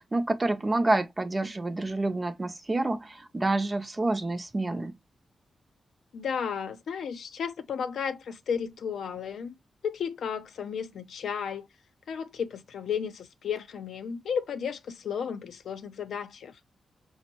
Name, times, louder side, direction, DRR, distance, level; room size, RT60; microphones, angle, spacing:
voice 1, 0.0-4.9, right 2 dB, 25° right, 0.5 m, -28 dB
voice 2, 6.1-9.6 9.8-11.7 12.1-16.6, left 7 dB, 85° left, 0.5 m, -33 dB
5.1 x 2.0 x 2.9 m
wide cardioid pair, 115°, 0 cm